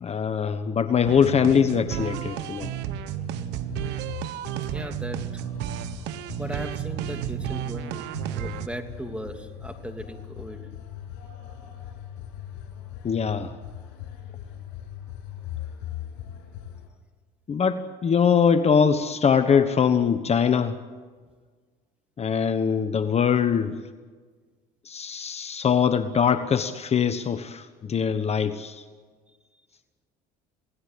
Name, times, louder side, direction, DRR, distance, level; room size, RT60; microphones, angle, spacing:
voice 1, 0.0-2.7 13.0-13.5 17.5-20.7 22.2-23.7 24.8-28.8, left 7 dB, 35° left, 10 dB, 1.2 m, -22 dB
sound 1, 1.0-8.7, right 11 dB, 75° right, 1.3 m, -32 dB
sound 2, 1.1-16.9, left 10 dB, 80° left, 7.1 m, -41 dB
voice 2, 4.6-5.4 6.4-10.6, right 1 dB, 5° right, 5 dB, 2.9 m, -37 dB
27.5 x 18.5 x 8.3 m, 1.5 s
supercardioid pair, 85°, 18 cm